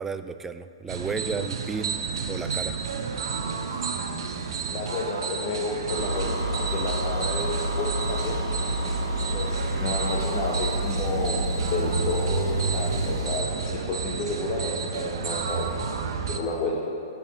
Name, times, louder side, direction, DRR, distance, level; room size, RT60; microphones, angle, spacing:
voice 1, 0.0-2.0 2.3-2.8, right 5 dB, 10° right, 11 dB, 0.3 m, -33 dB
sound 1, 0.9-16.4, right 5 dB, 55° right, 0.8 m, -31 dB
voice 2, 4.7-8.4 9.3-11.4 11.7-15.7 16.3-16.9, left 3 dB, 35° left, -3 dB, 1.0 m, -31 dB
sound 2, 5.9-13.4, right 1 dB, 40° right, 2.0 m, -29 dB
8.6 x 5.8 x 6.0 m, 2.7 s
figure-of-eight pair, 115°, 3 cm